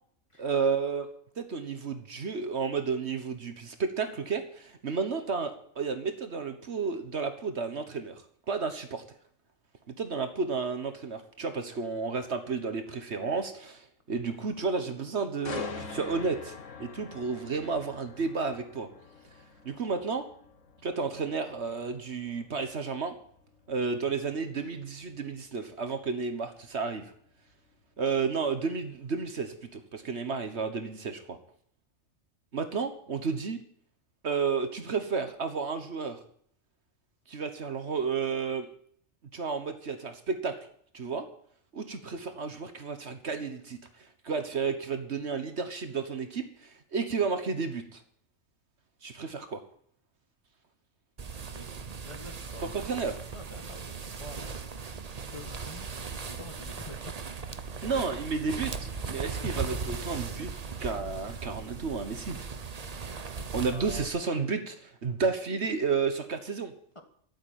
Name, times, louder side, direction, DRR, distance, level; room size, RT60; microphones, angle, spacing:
voice 1, 0.4-1.1 1.4-8.1 8.5-9.0 9.9-16.5 16.8-18.9 19.6-20.2 20.8-23.1 23.7-27.0 28.0-31.4 32.5-33.6 34.2-36.2 37.3-38.7 39.3-40.5 40.9-41.3 41.7-43.8 44.2-48.0 49.0-49.6 52.8-53.1 57.8-60.5 60.8-62.4 63.5-66.7, right 5 dB, 55° right, 8 dB, 1.5 m, -32 dB
sound 1, 15.4-29.3 29.7-30.0, left 4 dB, 70° left, 1.7 m, -46 dB
hand on sheet brush, 51.2-64.1, right 5 dB, 35° right, 0.9 m, -38 dB
voice 2, 52.0-52.9 53.3-54.5 55.3-56.0 56.2-57.5 63.7-64.1 66.9-67.0, left 1 dB, 25° left, 5 dB, 1.7 m, -47 dB
13.0 x 8.1 x 9.3 m, 0.62 s
omnidirectional pair, 1.4 m